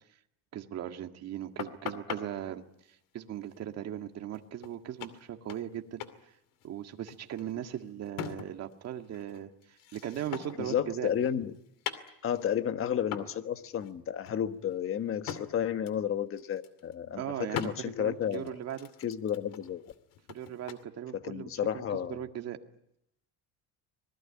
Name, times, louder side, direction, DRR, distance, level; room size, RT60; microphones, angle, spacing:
voice 1, 0.5-2.6 3.1-6.3 6.6-11.1 17.2-18.9 20.3-22.6, right 10 dB, 45° right, 1.9 m, -38 dB
sound 1, 1.6-2.2 4.3-4.4 4.6-4.8 5.0-5.7 6.0-6.2 6.5-8.7 9.0-10.7 11.1-12.5 13.1-13.4 13.7-13.9 14.3-15.5 15.9-16.1 16.4-16.9 17.5-17.8 18.3-20.8, left 9 dB, 65° left, 2.6 m, -41 dB
voice 2, 10.6-11.5 12.2-18.6 19.0-19.8 21.1-22.2, left 9 dB, 40° left, 1.4 m, -32 dB
26.5 x 20.5 x 9.9 m
cardioid pair, 150°, 35 cm